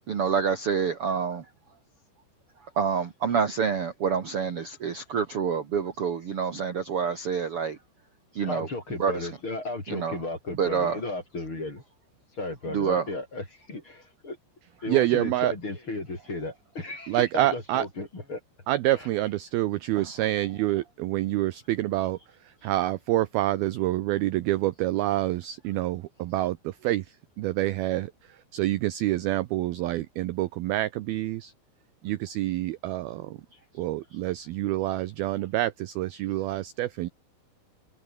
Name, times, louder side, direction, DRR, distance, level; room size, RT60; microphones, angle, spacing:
voice 1, 0.1-1.4 2.8-7.8 8.3-8.7 9.0-9.3 9.9-10.2 10.6-11.0 12.7-13.0 20.0-20.1, right 6 dB, 60° right, 1.5 m, -27 dB
voice 2, 8.4-11.8 12.4-14.4 14.8-18.4 18.9-19.1, left 2 dB, 25° left, 7.0 m, -34 dB
voice 3, 14.9-15.5 17.1-17.8 18.7-22.2 22.6-26.6 26.8-27.0 27.4-28.1 28.5-31.5 32.0-33.4 33.8-37.1, right 15 dB, 80° right, 2.2 m, -27 dB
omnidirectional pair, 5.5 m